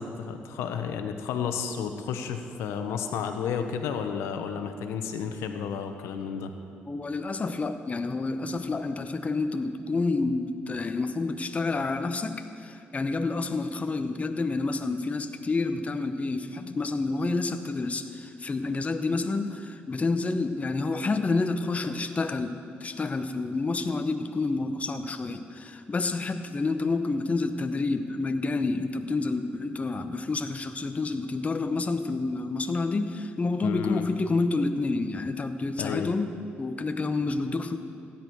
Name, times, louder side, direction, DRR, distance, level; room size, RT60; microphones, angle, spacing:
voice 1, 0.0-6.5 33.6-34.1 35.8-36.1, left 7 dB, 85° left, 6 dB, 0.9 m, -32 dB
voice 2, 6.9-37.8, left 3 dB, 30° left, 8 dB, 0.8 m, -29 dB
15.5 x 10.5 x 4.6 m, 2.6 s
cardioid pair, 75°, 4 cm